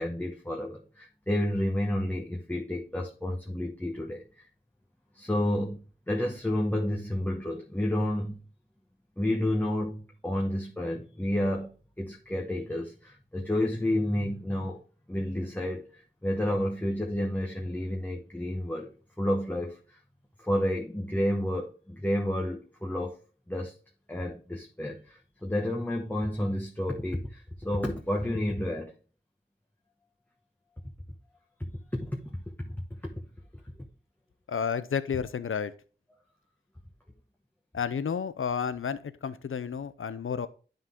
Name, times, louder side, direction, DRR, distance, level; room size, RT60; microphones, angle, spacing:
voice 1, 0.0-4.5 5.1-5.8 6.1-8.4 9.2-14.8 15.1-20.0 20.4-23.2 23.5-23.7 24.1-28.9 31.6-33.2, left 1 dB, 10° left, 1.1 m, -30 dB
voice 2, 34.5-35.7 37.7-40.5, left 7 dB, 90° left, 0.5 m, -31 dB
10.5 x 3.9 x 3.5 m
wide cardioid pair, 45°, 20 cm